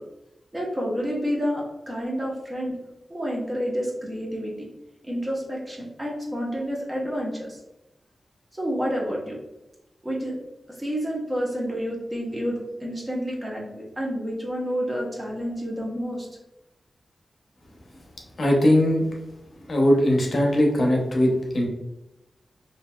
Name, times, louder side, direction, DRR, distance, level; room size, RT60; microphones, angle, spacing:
voice 1, 0.5-2.7 3.1-4.5 5.0-7.6 8.5-9.4 10.0-10.3 10.8-16.3, equal, 25° right, -3 dB, 1.0 m, -29 dB
voice 2, 18.4-19.0 19.7-21.7, left 1 dB, 60° left, 0 dB, 0.7 m, -20 dB
2.8 x 2.7 x 2.3 m, 0.96 s
cardioid pair, 60°, 0 cm